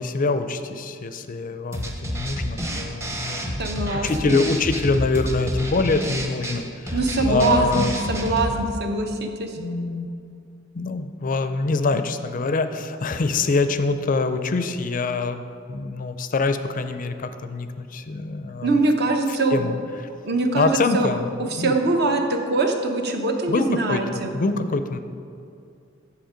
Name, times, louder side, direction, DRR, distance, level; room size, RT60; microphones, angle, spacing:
voice 1, 0.0-7.0 7.3-7.9 9.6-10.1 10.7-15.4 15.7-18.8 19.0-19.2 19.5-19.7 20.5-21.3 21.6-21.7 23.5-25.0, left 3 dB, 40° left, 9 dB, 0.4 m, -24 dB
sound 1, 1.7-8.6, equal, 15° right, 0.8 m, -29 dB
voice 2, 3.6-4.3 6.9-9.6 18.6-19.6 20.2-21.1 21.4-24.3, right 2 dB, 55° right, 4 dB, 0.9 m, -23 dB
7.9 x 6.9 x 5.0 m, 2.5 s
head